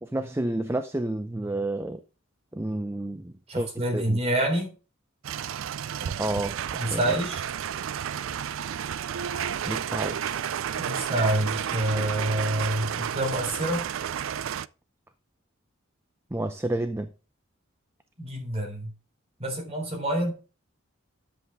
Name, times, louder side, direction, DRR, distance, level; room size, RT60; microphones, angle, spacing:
voice 1, 0.0-2.0 2.5-4.2 6.2-6.6 6.9-7.2 9.7-10.4 16.3-17.1, right 1 dB, 10° right, 0.5 m, -30 dB
voice 2, 3.5-4.8 6.8-7.4 10.8-13.9 18.2-18.9 19.4-20.3, right 1 dB, 30° right, 3.7 m, -27 dB
sound 1, 5.2-14.7, right 8 dB, 70° right, 0.4 m, -31 dB
10.5 x 7.5 x 3.5 m
head